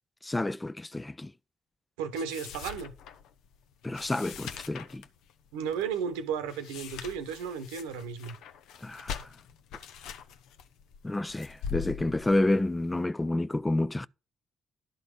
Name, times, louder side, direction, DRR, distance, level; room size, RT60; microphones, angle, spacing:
voice 1, 0.2-1.3 3.8-5.0 8.8-9.3 11.0-14.1, left 2 dB, 20° left, 0.4 m, -29 dB
voice 2, 2.0-2.9 5.5-8.4, right 7 dB, 90° right, 0.9 m, -34 dB
sound 1, 2.1-13.0, left 7 dB, 75° left, 0.7 m, -43 dB
11.5 x 4.0 x 7.9 m
hypercardioid pair, 50°, 0 cm